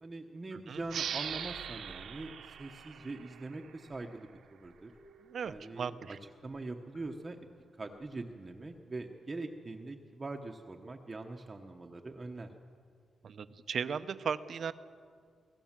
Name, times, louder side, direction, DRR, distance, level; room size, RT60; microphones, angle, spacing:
voice 1, 0.0-4.3 4.6-4.9 5.4-6.2 6.4-7.4 7.8-12.5, right 2 dB, 20° right, 3 dB, 1.0 m, -43 dB
voice 2, 0.5-0.8 5.3-6.2 13.2-14.7, right 6 dB, 55° right, 12 dB, 0.8 m, -37 dB
sound 1, 0.9-4.1, right 8 dB, 75° right, 1.1 m, -41 dB
sound 2, 3.0-8.7, left 1 dB, 75° left, 6.6 m, -62 dB
24.5 x 17.0 x 7.4 m, 2.1 s
wide cardioid pair, 150°, 0 cm